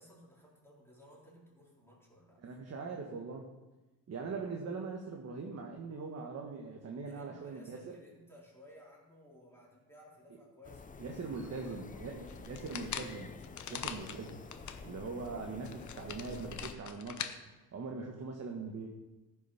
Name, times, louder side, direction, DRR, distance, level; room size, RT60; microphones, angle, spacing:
voice 1, 0.0-2.6 7.0-12.8 13.7-14.1 14.5-15.1, equal, 5° left, -5 dB, 3.7 m, -58 dB
voice 2, 2.4-3.5 4.1-8.0 11.0-13.4 13.7-14.3 14.8-18.9, right 4 dB, 45° right, 1 dB, 1.3 m, -41 dB
sound 1, 10.6-16.7, left 4 dB, 20° left, 0.6 m, -49 dB
sound 2, 12.3-14.8 15.3-15.4 15.6-17.3, left 8 dB, 50° left, 0.9 m, -42 dB
14.5 x 6.3 x 5.6 m, 1.1 s
cardioid pair, 125°, 37 cm